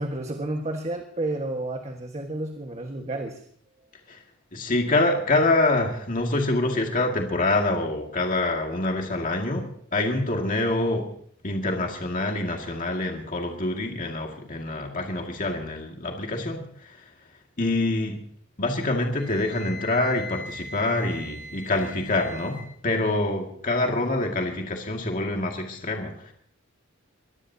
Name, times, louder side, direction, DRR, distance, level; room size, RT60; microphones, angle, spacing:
voice 1, 0.0-3.4, right 2 dB, 30° right, 3 dB, 1.5 m, -31 dB
voice 2, 4.5-11.1 11.4-17.1 17.6-18.2 18.6-26.3, left 2 dB, 40° left, 1 dB, 2.1 m, -26 dB
Wind instrument woodwind instrument, 19.1-22.6, left 3 dB, 55° right, 3.5 m, -40 dB
23.5 x 17.5 x 2.8 m, 0.62 s
head